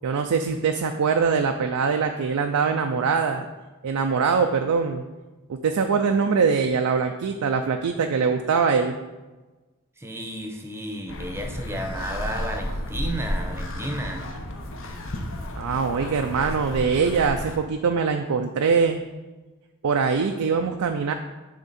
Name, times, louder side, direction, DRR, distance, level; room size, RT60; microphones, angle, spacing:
voice 1, 0.0-3.5 3.8-5.0 5.5-9.0 15.6-19.0 19.8-21.1, right 5 dB, 75° right, 5 dB, 0.4 m, -23 dB
voice 2, 10.0-14.2, right 1 dB, 10° right, 3 dB, 0.8 m, -32 dB
sound 1, 11.1-17.6, left 1 dB, 60° left, 0.9 m, -32 dB
10.0 x 3.6 x 4.2 m, 1.2 s
head